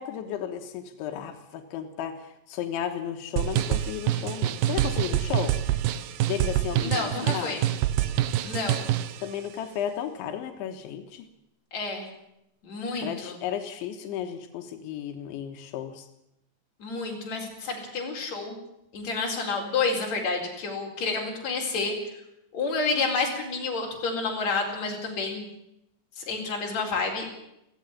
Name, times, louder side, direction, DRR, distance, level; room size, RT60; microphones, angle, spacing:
voice 1, 0.0-5.6 6.3-7.6 9.2-11.3 13.0-16.1, left 9 dB, 90° left, 6 dB, 3.7 m, -34 dB
sound 1, 3.4-9.2, right 12 dB, 90° right, 1.9 m, -26 dB
voice 2, 6.8-7.7 8.4-8.9 11.7-12.1 12.6-13.4 16.8-18.6 18.9-22.1 22.5-25.5 26.2-27.3, left 4 dB, 40° left, 0 dB, 5.3 m, -29 dB
16.5 x 16.0 x 9.9 m, 0.83 s
omnidirectional pair, 5.2 m